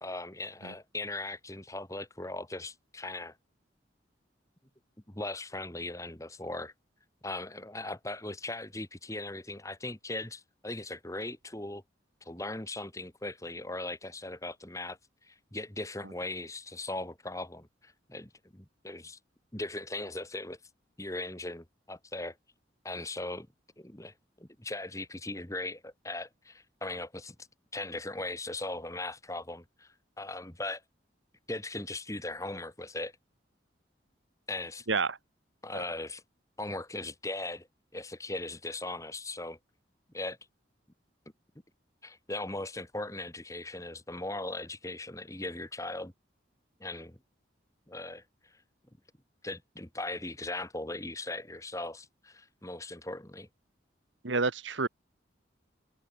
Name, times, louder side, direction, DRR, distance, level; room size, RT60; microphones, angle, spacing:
voice 1, 0.0-3.4 5.1-6.7 7.2-11.8 12.2-19.2 19.5-20.6 21.0-22.4 22.8-23.5 23.8-27.4 27.7-30.8 31.5-33.1 34.5-34.9 35.6-36.2 36.6-37.7 37.9-39.6 40.1-40.4 42.0-46.1 46.8-47.2 47.9-48.2 49.4-53.5, left 2 dB, 15° left, 2.2 m, -39 dB
voice 2, 54.2-54.9, right 4 dB, 80° right, 1.5 m, -29 dB
head